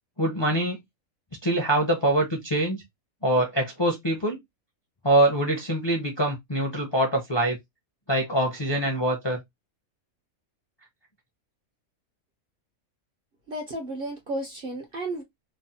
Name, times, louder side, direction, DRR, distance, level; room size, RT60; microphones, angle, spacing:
voice 1, 0.2-0.8 1.4-2.8 3.2-4.4 5.0-7.6 8.1-9.4, right 1 dB, 30° left, 0.5 m, -24 dB
voice 2, 13.5-15.2, right 1 dB, 50° right, 0.7 m, -33 dB
3.1 x 2.1 x 2.7 m
omnidirectional pair, 1.5 m